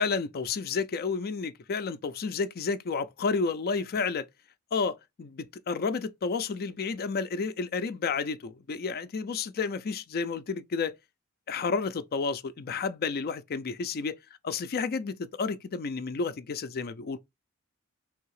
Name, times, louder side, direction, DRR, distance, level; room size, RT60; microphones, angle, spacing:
voice 1, 0.0-4.3 4.7-10.9 11.5-14.2 14.4-17.2, left 4 dB, 45° left, 0.4 m, -31 dB
3.4 x 2.8 x 4.7 m
head